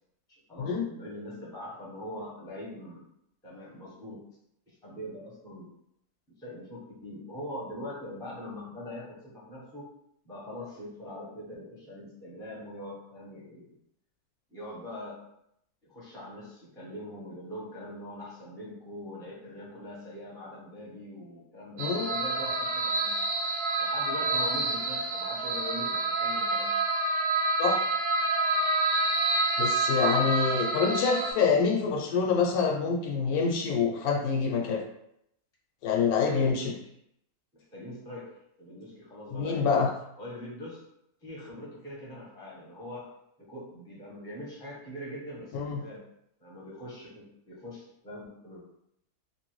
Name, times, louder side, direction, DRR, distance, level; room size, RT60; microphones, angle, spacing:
voice 1, 0.3-3.1 3.4-4.2 4.8-5.7 6.4-9.9 10.2-13.8 14.5-15.2 15.8-23.3 23.8-26.9 30.3-30.7 36.1-36.9 37.5-39.9 40.2-40.8 41.2-43.1 43.4-46.1 46.4-48.6, left 1 dB, 5° left, -6 dB, 0.6 m, -42 dB
voice 2, 21.8-22.1 27.6-27.8 29.6-34.8 35.8-36.7 39.3-39.9 45.5-45.8, left 5 dB, 75° left, 0 dB, 1.0 m, -26 dB
sound 1, 21.8-31.3, right 2 dB, 65° right, 0.8 m, -28 dB
2.8 x 2.6 x 3.0 m, 0.77 s
omnidirectional pair, 1.7 m